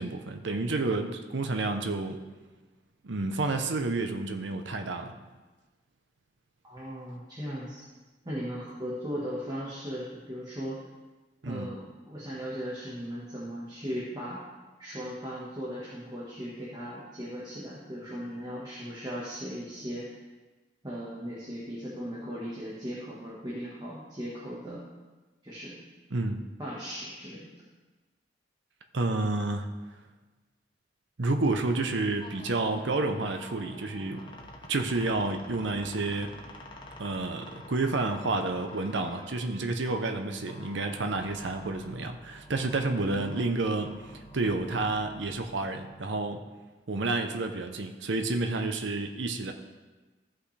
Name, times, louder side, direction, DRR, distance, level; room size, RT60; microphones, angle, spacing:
voice 1, 0.0-2.2 3.0-5.1 11.4-11.7 26.1-26.4 28.9-29.7 31.2-34.2 34.7-36.3 37.0-46.4 46.9-49.5, right 2 dB, 80° right, 5 dB, 0.8 m, -30 dB
voice 2, 6.6-7.8 8.2-10.8 11.4-11.8 12.1-14.4 14.8-20.1 20.8-24.8 25.4-25.8 26.6-27.5 43.0-43.3, equal, 20° right, -7 dB, 1.4 m, -37 dB
sound 1, 31.5-45.9, left 1 dB, 25° left, 0.8 m, -48 dB
14.5 x 5.6 x 3.3 m, 1.2 s
head